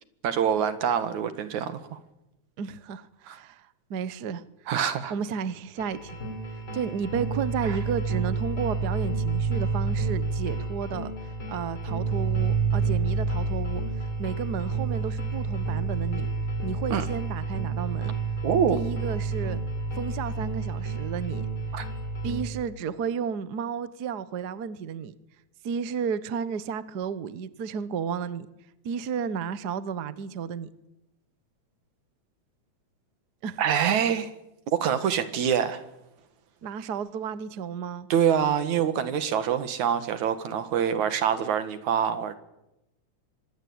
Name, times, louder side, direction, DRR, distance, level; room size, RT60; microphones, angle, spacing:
voice 1, 0.2-2.0 3.3-3.4 4.7-5.1 16.9-17.0 18.4-18.8 21.7-21.9 33.6-34.3 34.7-35.8 38.1-42.4, right 8 dB, 80° right, 12 dB, 3.1 m, -25 dB
voice 2, 2.6-4.4 5.1-6.2 6.7-11.1 11.5-13.8 14.2-16.3 16.6-18.1 18.7-19.6 19.9-21.4 22.2-25.1 25.6-28.5 28.8-30.7 33.4-33.6 36.6-38.1, right 6 dB, 55° right, 15 dB, 1.1 m, -32 dB
sound 1, 5.8-22.5, right 4 dB, 45° left, 4.9 m, -29 dB
25.0 x 21.0 x 8.8 m, 0.91 s
omnidirectional pair, 3.3 m